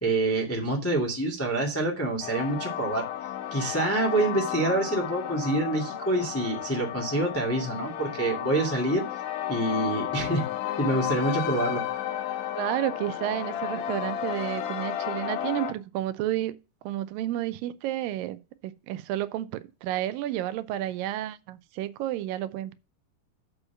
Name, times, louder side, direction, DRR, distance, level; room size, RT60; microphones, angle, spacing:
voice 1, 0.0-3.0 3.5-9.0 9.5-10.5 10.8-11.8, right 2 dB, 10° left, 0.9 m, -26 dB
sound 1, 2.2-15.7, left 11 dB, 75° left, 1.8 m, -33 dB
voice 2, 12.6-16.5 16.8-22.7, right 13 dB, 85° right, 2.3 m, -31 dB
6.9 x 5.4 x 6.9 m
omnidirectional pair, 3.9 m